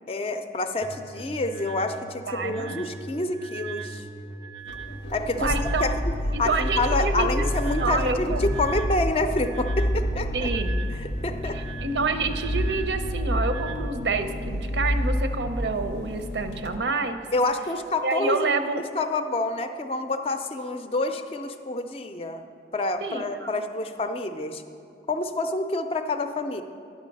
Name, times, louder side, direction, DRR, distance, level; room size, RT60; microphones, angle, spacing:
voice 1, 0.1-4.0 5.1-5.5 5.8-6.1 6.4-10.5 11.0-11.6 17.3-22.4 22.7-24.6 25.1-26.6, left 2 dB, 35° left, 8 dB, 0.4 m, -28 dB
sound 1, 0.8-13.8, right 4 dB, 30° right, 0.4 m, -40 dB
voice 2, 2.3-2.9 5.4-5.9 6.3-8.5 10.3-10.9 11.5-17.2 18.0-18.8 23.0-23.5, right 4 dB, 85° right, 8 dB, 0.6 m, -28 dB
sound 2, 4.7-16.8, equal, 90° left, 0.6 m, -29 dB
10.5 x 6.3 x 5.3 m, 2.7 s
head